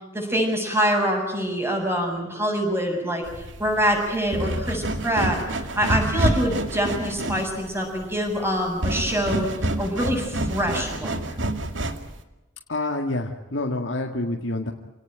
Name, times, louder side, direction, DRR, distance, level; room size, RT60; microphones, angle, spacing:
voice 1, 0.1-5.4 5.8-9.5 9.8-11.3, equal, 15° right, 2 dB, 7.5 m, -25 dB
sound 1, 3.3-12.2, right 1 dB, 70° right, 2.3 m, -28 dB
voice 2, 12.7-14.7, left 2 dB, 70° left, 2 dB, 2.0 m, -27 dB
28.0 x 18.5 x 9.1 m, 1.0 s
head